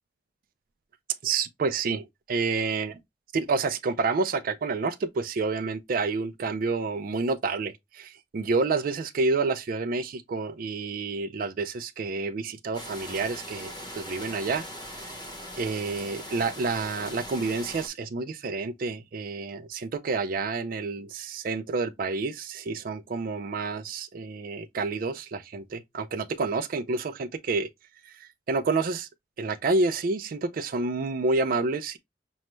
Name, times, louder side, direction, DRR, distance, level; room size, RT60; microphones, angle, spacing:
voice 1, 1.2-2.9 3.3-14.6 15.0-15.1 15.6-27.7 28.0-29.1 29.4-32.0, right 3 dB, 50° right, 0.4 m, -29 dB
sound 1, 12.7-17.9, equal, 25° left, 0.9 m, -40 dB
6.2 x 2.2 x 3.0 m
head